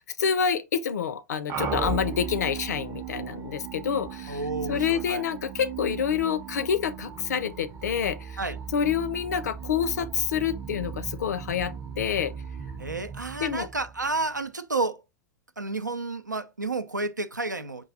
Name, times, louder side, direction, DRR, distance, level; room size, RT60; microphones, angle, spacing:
voice 1, 0.2-4.4 4.7-8.4 8.7-12.3 13.4-13.7, left 7 dB, 65° left, 0.5 m, -27 dB
sound 1, 1.5-14.4, right 7 dB, 30° right, 0.6 m, -37 dB
voice 2, 4.3-5.2 8.4-8.6 12.8-15.0 15.6-17.9, right 3 dB, 90° right, 0.4 m, -31 dB
4.6 x 2.2 x 3.9 m
figure-of-eight pair, 90°, 10 cm